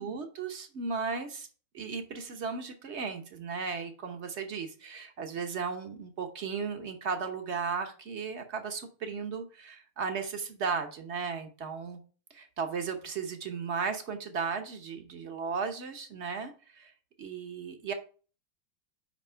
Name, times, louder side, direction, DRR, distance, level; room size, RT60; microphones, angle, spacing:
voice 1, 0.0-1.5 1.7-12.0 12.3-16.9 17.2-17.9, right 5 dB, 50° right, 6 dB, 0.9 m, -35 dB
5.9 x 5.3 x 5.5 m, 0.39 s
omnidirectional pair, 2.3 m